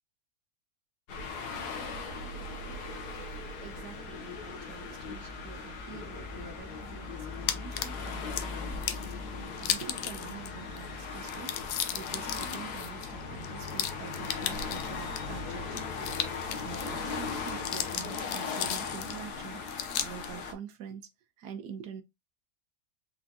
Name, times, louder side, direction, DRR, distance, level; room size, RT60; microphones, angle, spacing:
sound 1, 1.1-20.5, left 4 dB, 70° left, 1.4 m, -38 dB
voice 1, 3.6-16.1 16.6-19.6 20.0-21.1 21.4-22.0, right 7 dB, 75° right, 1.4 m, -46 dB
sound 2, 7.5-8.4 8.8-9.1 9.6-10.5 10.8-10.9 11.2-15.2 15.7-16.9 17.3-19.2 19.7-20.3, left 10 dB, 85° left, 1.2 m, -35 dB
4.4 x 3.8 x 2.8 m
omnidirectional pair, 1.8 m